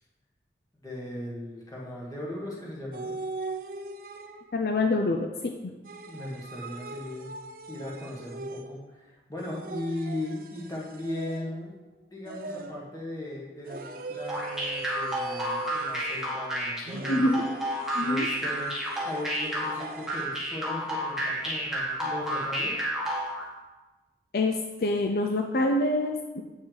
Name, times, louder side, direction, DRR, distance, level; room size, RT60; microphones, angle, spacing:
voice 1, 0.8-3.1 6.1-7.3 7.7-11.7 12.1-17.2 18.0-18.8 19.0-22.8, left 1 dB, 20° left, -4 dB, 1.7 m, -38 dB
sound 1, 2.9-4.6 5.8-8.9 9.4-11.7 12.3-13.0 13.6-16.4 16.9-20.4, right 3 dB, 50° right, 0.5 m, -40 dB
voice 2, 4.5-5.3 5.6-5.7 17.1-17.4 17.9-18.3 24.3-26.4, left 2 dB, 55° left, 3 dB, 0.5 m, -26 dB
sound 2, 14.3-23.4, equal, ahead, 1.4 m, -31 dB
7.8 x 6.1 x 4.0 m, 1.2 s
head